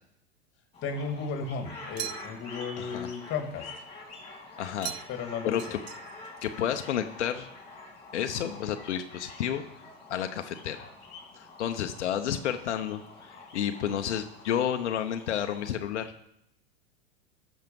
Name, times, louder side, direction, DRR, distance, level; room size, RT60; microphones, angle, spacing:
sound 1, 0.7-15.7, left 3 dB, 15° left, 3.2 m, -47 dB
voice 1, 0.8-3.7 5.1-5.8, left 5 dB, 35° left, 6 dB, 1.9 m, -34 dB
sound 2, 2.0-2.6 4.8-5.3 5.6-6.3, right 14 dB, 65° right, 0.5 m, -39 dB
voice 2, 2.8-3.1 4.6-5.0 5.5-5.8 6.4-7.5 8.1-9.6 10.1-10.8 11.3-16.1, left 9 dB, 90° left, 6 dB, 0.8 m, -31 dB
13.5 x 6.5 x 5.3 m, 0.78 s
hypercardioid pair, 125°, 34 cm